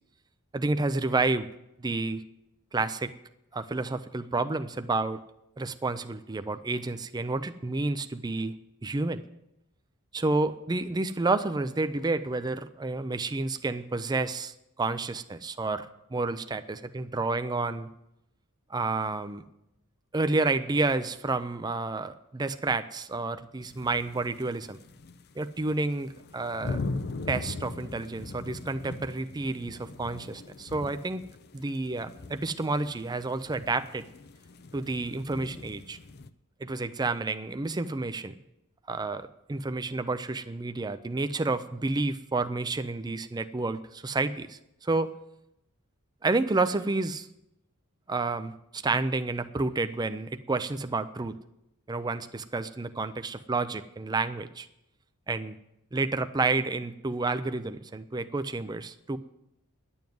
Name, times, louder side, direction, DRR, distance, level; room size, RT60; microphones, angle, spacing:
voice 1, 0.5-1.5 1.8-2.2 2.7-3.1 3.5-5.2 5.6-8.6 8.8-9.2 10.1-15.9 16.1-17.9 18.7-19.5 20.1-24.8 25.4-26.8 27.3-31.2 31.5-34.1 34.7-36.0 36.6-38.3 38.9-45.1 46.2-47.3 48.1-51.4 51.9-54.7 55.3-55.6 55.9-59.2, right 3 dB, 20° right, 10 dB, 0.5 m, -30 dB
sound 1, 23.6-25.3 25.6-36.3, left 3 dB, 45° left, 0.5 m, -40 dB
11.0 x 7.2 x 9.3 m, 0.85 s
head